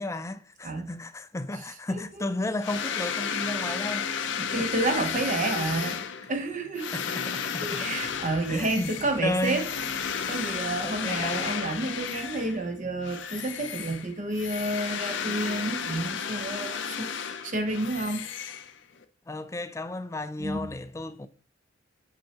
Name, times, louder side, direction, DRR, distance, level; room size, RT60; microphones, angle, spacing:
voice 1, 0.0-4.7 6.9-7.9 8.5-9.6 10.8-11.5 19.3-21.3, left 2 dB, 15° left, 0.4 m, -33 dB
sound 1, 2.6-12.7 13.0-19.0, left 7 dB, 70° left, 0.6 m, -33 dB
voice 2, 4.4-7.0 7.6-9.7 10.0-18.3 20.4-20.7, right 2 dB, 45° right, 1.0 m, -30 dB
sound 2, 8.0-13.1, equal, 25° right, 2.4 m, -52 dB
6.2 x 5.6 x 2.9 m
head